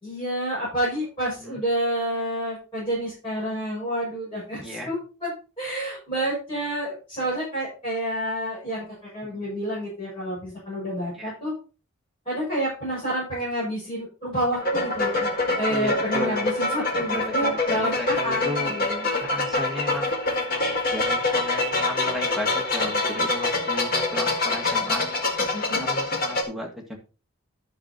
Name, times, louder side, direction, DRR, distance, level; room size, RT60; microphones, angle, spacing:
voice 1, 0.0-11.5 12.2-15.3 15.6-19.0 25.5-25.9, right 1 dB, 25° left, -9 dB, 6.1 m, -29 dB
voice 2, 4.6-4.9 9.2-9.4 11.1-11.3 15.7-16.5 17.0-18.8 19.2-20.2 20.9-25.0 25.8-27.0, left 1 dB, ahead, -1 dB, 1.8 m, -35 dB
sound 1, 14.5-26.4, left 2 dB, 45° left, 1.8 m, -25 dB
11.0 x 6.5 x 4.0 m, 0.34 s
head